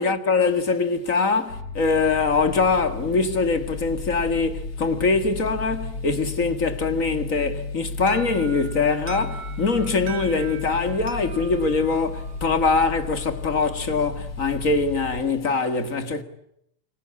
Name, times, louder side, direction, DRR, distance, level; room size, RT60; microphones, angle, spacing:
voice 1, 0.0-16.2, left 4 dB, 30° left, 1.8 m, -23 dB
sound 1, 1.5-15.2, left 4 dB, 55° left, 5.0 m, -34 dB
Alarm, 8.1-12.9, right 8 dB, 50° right, 2.3 m, -41 dB
28.5 x 24.5 x 8.6 m
omnidirectional pair, 3.4 m